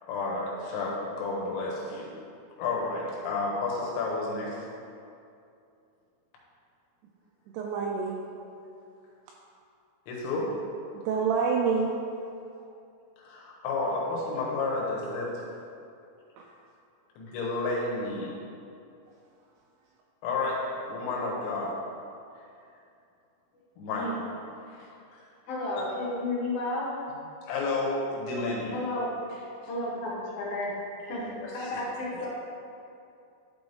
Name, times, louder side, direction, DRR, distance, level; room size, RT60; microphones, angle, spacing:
voice 1, 0.0-2.2 2.6-4.7 10.1-10.7 13.2-15.5 17.2-18.4 20.2-21.9 23.8-24.3 24.7-25.2 25.8-25.9 27.4-28.8 29.3-29.4 30.9-31.8, left 3 dB, 85° left, -2 dB, 3.5 m, -32 dB
voice 2, 7.5-8.2 11.0-11.9 16.4-16.5, right 5 dB, 85° right, -1 dB, 2.3 m, -27 dB
voice 3, 25.5-26.9 28.7-29.1 29.7-30.7 31.1-31.2 31.5-32.3, left 2 dB, 65° left, -5 dB, 2.5 m, -32 dB
11.5 x 4.1 x 3.5 m, 2.6 s
omnidirectional pair, 5.1 m